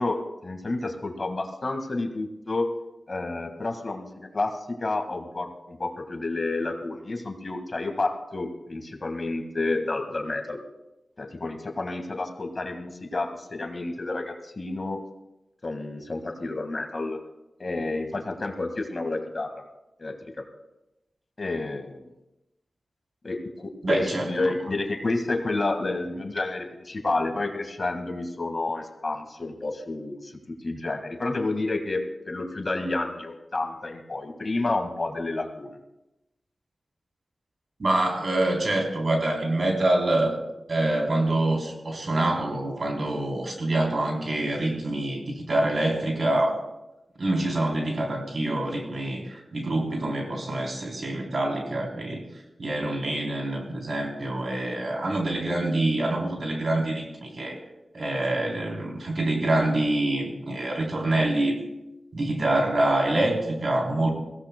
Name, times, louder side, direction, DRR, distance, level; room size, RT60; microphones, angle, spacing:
voice 1, 0.0-2.7 3.1-10.6 11.2-15.0 15.6-17.2 17.6-19.5 20.0-20.1 21.4-22.1 23.2-30.3 30.6-35.7 52.8-52.9, left 2 dB, 50° left, 5 dB, 1.8 m, -30 dB
voice 2, 23.8-24.5 37.8-40.3 40.7-46.6 47.2-52.2 52.6-57.6 57.9-61.6 62.1-64.1, right 1 dB, 60° right, 1 dB, 3.5 m, -26 dB
21.5 x 16.0 x 2.2 m, 0.95 s
cardioid pair, 60°, 0 cm